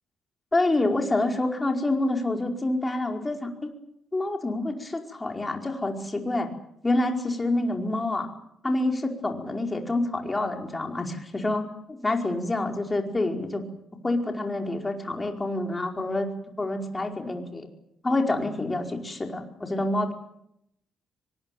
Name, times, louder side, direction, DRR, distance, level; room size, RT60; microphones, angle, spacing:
voice 1, 0.5-3.7 4.1-6.5 6.8-8.3 8.6-13.6 14.0-16.3 16.6-17.7 18.0-20.1, left 2 dB, 20° left, 3 dB, 4.9 m, -27 dB
24.0 x 20.5 x 9.3 m, 0.78 s
cardioid pair, 90°, 0 cm